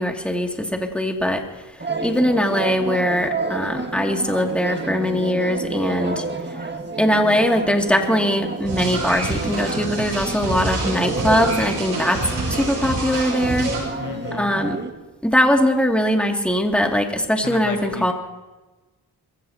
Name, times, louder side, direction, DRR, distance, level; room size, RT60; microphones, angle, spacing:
voice 1, 0.0-1.4 2.0-6.2 7.0-12.2 12.5-13.7 14.3-14.8 15.2-18.1, equal, 5° left, 2 dB, 2.4 m, -21 dB
sound 1, 1.8-14.9, right 3 dB, 25° right, 1.8 m, -30 dB
sound 2, 8.6-13.8, right 2 dB, 80° right, 6.0 m, -28 dB
voice 2, 13.9-14.6 17.4-18.1, left 5 dB, 45° left, 5 dB, 1.4 m, -32 dB
22.5 x 15.5 x 2.9 m, 1.1 s
cardioid pair, 50°, 41 cm